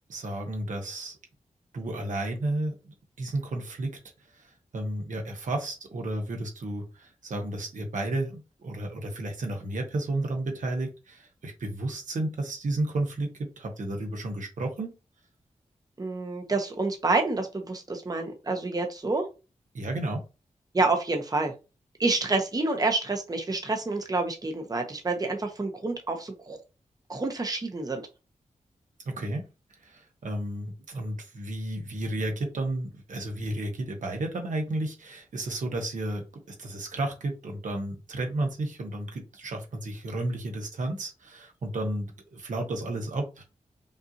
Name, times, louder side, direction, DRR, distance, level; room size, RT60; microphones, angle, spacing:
voice 1, 0.1-1.2 1.7-3.9 4.3-15.0 19.7-20.2 29.2-29.4 29.8-43.4, right 2 dB, 75° right, 3 dB, 1.1 m, -32 dB
voice 2, 16.0-19.3 20.7-21.5 22.0-26.6 27.1-28.0, right 3 dB, 30° right, 3 dB, 0.9 m, -28 dB
5.3 x 2.6 x 2.9 m, 0.29 s
wide cardioid pair, 80°, 13 cm